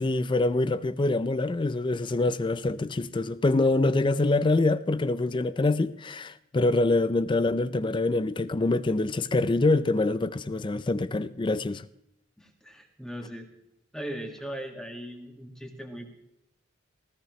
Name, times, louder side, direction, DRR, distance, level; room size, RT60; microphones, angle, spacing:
voice 1, 0.0-11.9, left 2 dB, 25° left, 0.4 m, -25 dB
voice 2, 12.4-13.5 13.9-16.2, right 1 dB, 5° left, 2.0 m, -39 dB
19.0 x 15.0 x 3.2 m
head